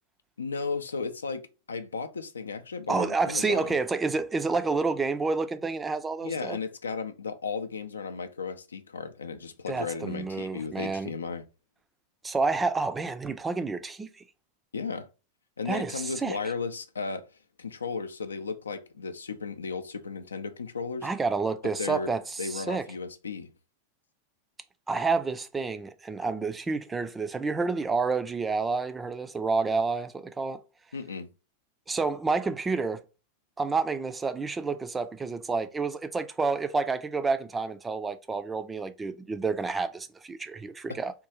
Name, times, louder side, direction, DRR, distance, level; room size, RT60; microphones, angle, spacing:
voice 1, 0.4-3.8 6.2-11.4 14.7-15.1 15.6-17.3 17.6-21.1 21.8-22.1 22.4-23.5 30.9-31.3 40.9-41.0, left 4 dB, 75° left, 0.4 m, -35 dB
voice 2, 2.9-6.6 9.7-11.1 12.2-14.1 15.7-16.4 21.0-22.8 24.9-30.6 31.9-33.0 33.6-41.1, right 4 dB, 15° right, 0.4 m, -29 dB
3.7 x 2.3 x 2.8 m
figure-of-eight pair, 90°, 0 cm